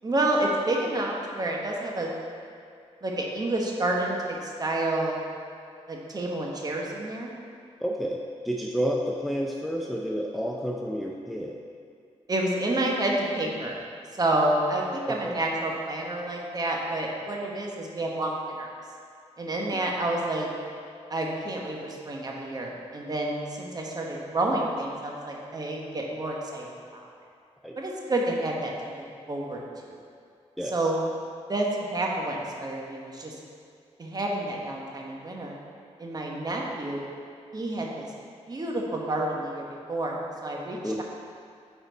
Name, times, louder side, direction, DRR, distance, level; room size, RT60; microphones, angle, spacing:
voice 1, 0.0-2.1 3.0-5.3 5.9-7.3 12.3-13.8 14.2-18.7 19.4-20.5 21.1-26.6 26.9-27.1 27.8-29.6 29.9-30.0 30.6-31.0 31.5-33.3 34.0-35.6 36.0-37.1 37.5-38.0 38.5-41.0, right 1 dB, 35° right, -1 dB, 1.2 m, -29 dB
voice 2, 7.8-8.2 8.4-11.6 15.1-15.4 27.6-27.8 30.6-30.9 40.8-41.0, equal, ahead, 0 dB, 0.5 m, -30 dB
9.2 x 4.3 x 4.0 m, 2.3 s
cardioid pair, 85°, 12 cm